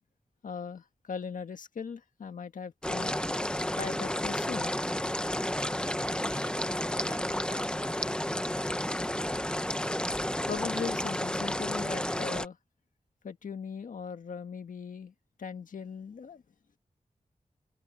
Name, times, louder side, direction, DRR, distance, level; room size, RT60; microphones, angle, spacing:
voice 1, 0.4-3.2 3.7-4.7 10.5-12.6 13.2-15.1 15.4-16.4, left 6 dB, 85° left, 1.7 m, -39 dB
sound 1, 2.8-12.5, left 1 dB, 5° left, 1.0 m, -31 dB
voice 2, 6.3-8.9, right 3 dB, 40° right, 4.9 m, -54 dB
open air
wide cardioid pair, 105°, 13 cm